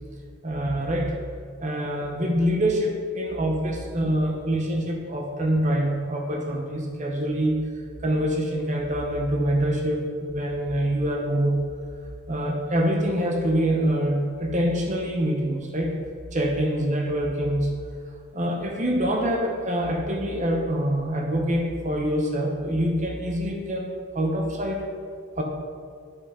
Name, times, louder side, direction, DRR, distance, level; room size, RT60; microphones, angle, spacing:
voice 1, 0.4-1.2 1.6-7.6 8.0-11.6 12.3-15.9 16.3-17.7 18.3-24.9 25.4-25.5, equal, 35° right, 1 dB, 0.8 m, -25 dB
8.3 x 5.5 x 4.9 m, 2.2 s
head